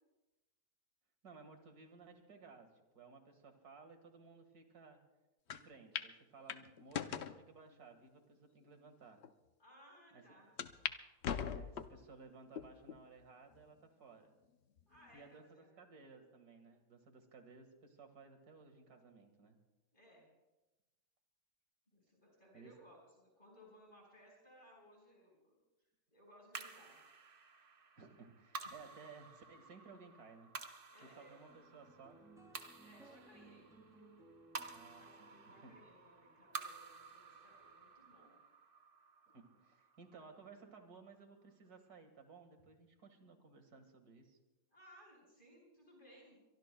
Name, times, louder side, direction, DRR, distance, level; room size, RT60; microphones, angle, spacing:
voice 1, 1.2-5.0 5.5-9.2 10.1-10.2 11.5-14.3 15.1-19.6 22.5-22.7 28.0-30.5 31.0-32.2 34.7-35.7 39.3-44.4, right 4 dB, 65° right, 6 dB, 2.3 m, -58 dB
sound 1, 5.5-5.6 5.9-6.1 6.5-7.4 8.0-8.1 8.8-8.9 9.2-9.3 10.6-11.0 11.2-12.0 12.6-13.0 13.5-13.6 14.8-15.2, left 8 dB, 60° left, 0.7 m, -41 dB
voice 2, 9.6-10.5 14.9-15.7 19.9-20.3 21.9-25.6 26.1-27.0 30.9-31.4 32.8-33.8 34.7-38.4 44.7-46.4, equal, 30° left, -3 dB, 5.0 m, -62 dB
sound 2, 26.5-41.0, right 4 dB, 40° right, 0.9 m, -52 dB
sound 3, 31.5-38.1, right 2 dB, ahead, 2.9 m, -63 dB
24.0 x 23.5 x 2.2 m, 1.1 s
omnidirectional pair, 1.7 m